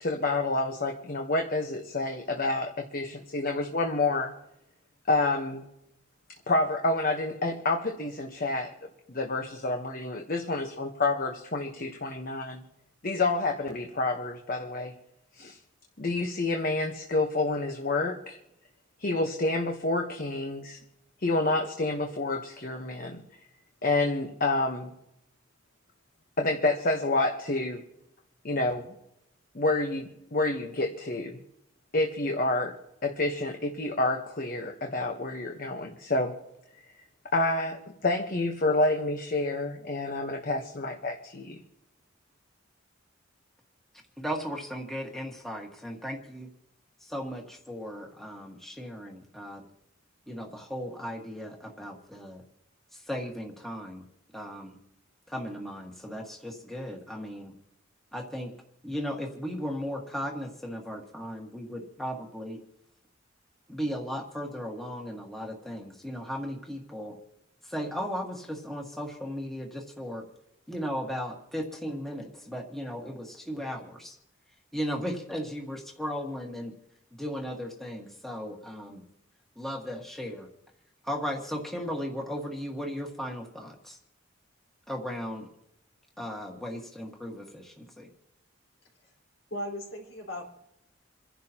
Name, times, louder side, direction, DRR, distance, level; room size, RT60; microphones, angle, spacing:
voice 1, 0.0-4.3 5.1-5.6 6.5-8.7 9.1-12.6 13.0-14.9 15.4-15.6 16.0-18.4 19.0-20.8 21.2-23.2 23.8-24.9 26.4-27.8 28.4-28.9 29.5-31.4 31.9-32.8 33.0-36.4 37.3-41.6, left 2 dB, 45° left, 3 dB, 1.1 m, -28 dB
voice 2, 44.2-46.5 47.1-49.6 50.3-52.4 53.1-54.0 54.3-54.8 55.3-57.5 58.1-58.5 58.8-62.6 63.7-67.1 67.7-70.2 70.7-74.1 74.7-76.7 77.2-79.0 79.6-80.5 81.1-83.9 84.9-85.5 86.2-88.1, equal, ahead, 0 dB, 1.7 m, -36 dB
voice 3, 89.5-90.5, equal, 75° left, -1 dB, 4.7 m, -36 dB
28.5 x 11.5 x 2.9 m, 0.83 s
head